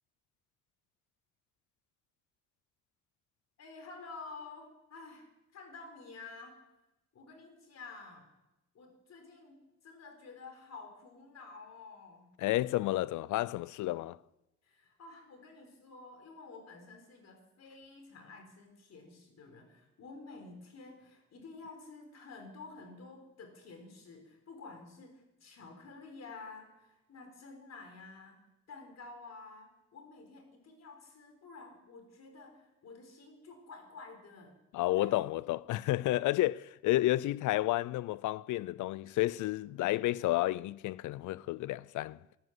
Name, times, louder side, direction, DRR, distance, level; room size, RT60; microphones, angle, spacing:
voice 1, 3.6-5.3 5.5-6.6 7.1-8.3 8.7-12.3 14.6-28.4 28.7-34.6 34.9-35.1, left 3 dB, 60° left, 4.2 m, -50 dB
voice 2, 12.4-14.2 34.7-42.2, left 16 dB, 80° left, 0.5 m, -31 dB
14.0 x 12.0 x 7.7 m
cardioid pair, 90°, 30 cm